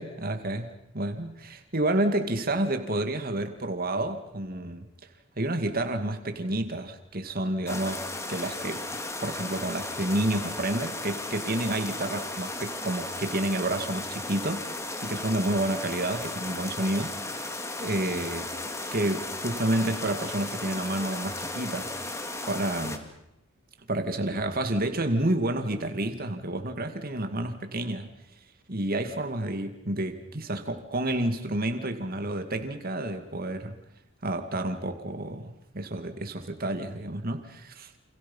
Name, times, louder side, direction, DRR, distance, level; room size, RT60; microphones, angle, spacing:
voice 1, 0.0-4.9 5.4-8.0 8.3-8.9 9.2-18.5 18.9-21.9 22.5-23.1 23.9-28.1 28.7-33.8 34.2-38.0, right 1 dB, 45° right, 7 dB, 2.4 m, -30 dB
sound 1, 7.7-23.0, left 2 dB, 15° left, 2.4 m, -35 dB
29.5 x 27.5 x 5.6 m, 0.81 s
head